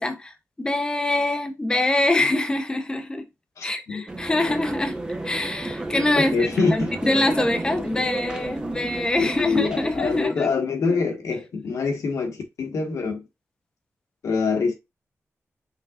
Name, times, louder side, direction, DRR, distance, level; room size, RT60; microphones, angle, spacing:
voice 1, 0.0-3.3 3.6-5.0 5.2-10.5, left 2 dB, 15° left, 0.7 m, -24 dB
voice 2, 3.6-4.0 6.1-6.9 9.2-13.2 14.2-14.7, left 4 dB, 85° left, 1.3 m, -25 dB
sound 1, 4.1-10.3, right 2 dB, 15° right, 0.8 m, -32 dB
5.7 x 3.9 x 2.4 m
wide cardioid pair, 120°, 5 cm